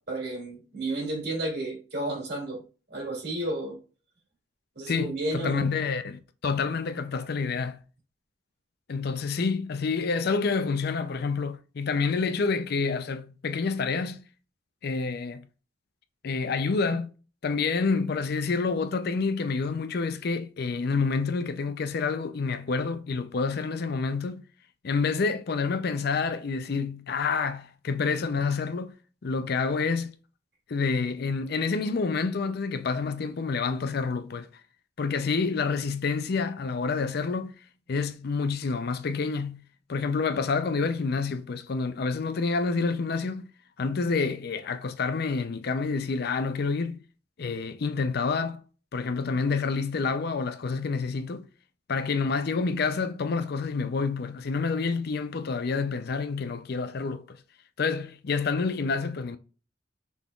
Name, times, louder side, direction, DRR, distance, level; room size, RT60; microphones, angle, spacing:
voice 1, 0.1-2.6 2.9-3.8 4.8-5.6, right 2 dB, 60° right, 2.5 m, -32 dB
voice 2, 4.9-7.8 8.9-14.2 14.8-15.5 16.2-17.1 17.4-24.4 24.8-28.9 29.2-30.1 30.7-34.5 35.0-37.5 37.9-39.6 39.9-43.5 43.8-47.0 47.4-48.6 48.9-51.5 51.9-57.4 57.8-59.4, left 4 dB, 55° left, 0.5 m, -28 dB
6.1 x 3.6 x 2.3 m
head